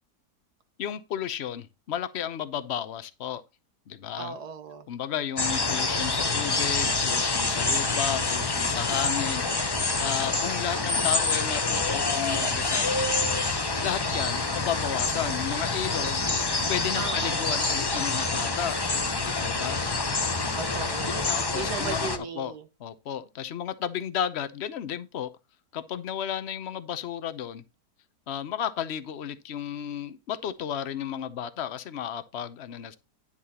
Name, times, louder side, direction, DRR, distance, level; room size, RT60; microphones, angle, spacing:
voice 1, 0.8-3.4 3.9-4.4 4.9-9.4 10.0-13.1 13.8-16.3 16.7-18.8 19.2-19.8 20.5-20.7 21.3-22.5 22.8-25.3 25.7-27.6 28.3-33.0, left 9 dB, 55° left, 0.8 m, -33 dB
voice 2, 4.2-4.9 17.0-17.6 20.6-22.7, right 5 dB, 70° right, 1.8 m, -37 dB
sound 1, 5.4-22.2, left 3 dB, 35° left, 0.4 m, -27 dB
10.0 x 7.1 x 2.9 m
omnidirectional pair, 1.8 m